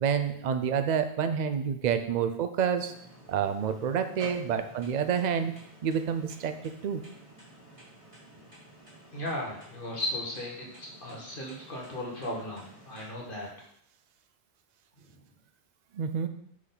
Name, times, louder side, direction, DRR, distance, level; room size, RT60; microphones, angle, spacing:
voice 1, 0.0-2.9 3.3-5.5 5.8-7.0 15.9-16.3, right 7 dB, 50° right, 8 dB, 0.6 m, -28 dB
sound 1, 2.7-13.0, right 1 dB, 30° right, 2.2 m, -51 dB
voice 2, 9.1-13.5 15.0-15.2, left 1 dB, 50° left, -2 dB, 1.5 m, -36 dB
6.2 x 6.1 x 3.9 m, 0.70 s
omnidirectional pair, 1.1 m